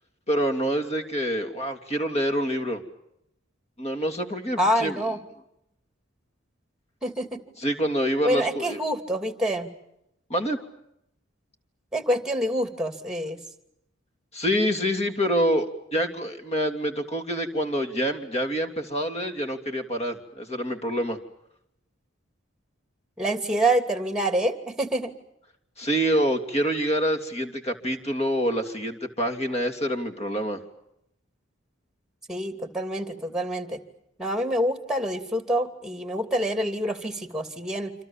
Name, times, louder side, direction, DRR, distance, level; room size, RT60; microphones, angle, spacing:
voice 1, 0.3-2.8 3.8-4.9 7.6-8.8 10.3-10.6 14.3-21.2 25.8-30.6, equal, 35° left, 6 dB, 3.1 m, -26 dB
voice 2, 4.6-5.2 7.0-7.4 8.2-9.7 11.9-13.4 23.2-25.1 32.3-33.8 34.2-37.9, right 1 dB, 5° right, 8 dB, 2.7 m, -26 dB
28.0 x 27.0 x 7.4 m, 0.80 s
head